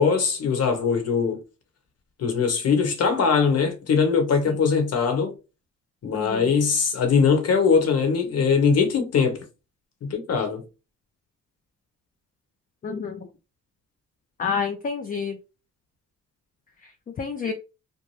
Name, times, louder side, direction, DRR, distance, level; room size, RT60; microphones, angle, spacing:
voice 1, 0.0-1.4 2.2-5.3 6.0-9.4 10.0-10.6, left 5 dB, 55° left, 1.0 m, -21 dB
voice 2, 6.1-6.5 12.8-13.3 14.4-15.4 17.2-17.5, left 6 dB, 30° left, 0.4 m, -28 dB
2.7 x 2.1 x 3.1 m
cardioid pair, 90°, 30 cm